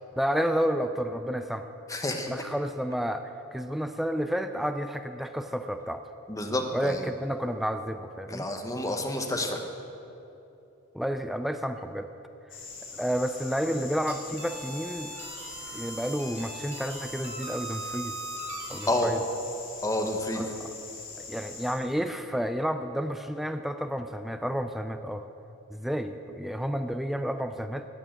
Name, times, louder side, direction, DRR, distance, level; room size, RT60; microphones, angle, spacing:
voice 1, 0.2-1.7 2.3-6.0 6.7-8.5 10.9-12.1 12.9-15.2 15.7-18.2 18.7-19.2 20.3-20.7 21.2-25.3 25.7-27.9, equal, ahead, 8 dB, 0.4 m, -31 dB
voice 2, 1.9-2.3 6.3-7.1 8.3-9.6 18.9-19.1 19.8-20.4, left 1 dB, 15° left, 3 dB, 1.2 m, -29 dB
sound 1, 12.5-21.7, left 4 dB, 60° left, 3.7 m, -43 dB
sound 2, 14.1-18.9, right 3 dB, 30° right, 2.5 m, -41 dB
13.0 x 8.6 x 8.9 m, 2.8 s
head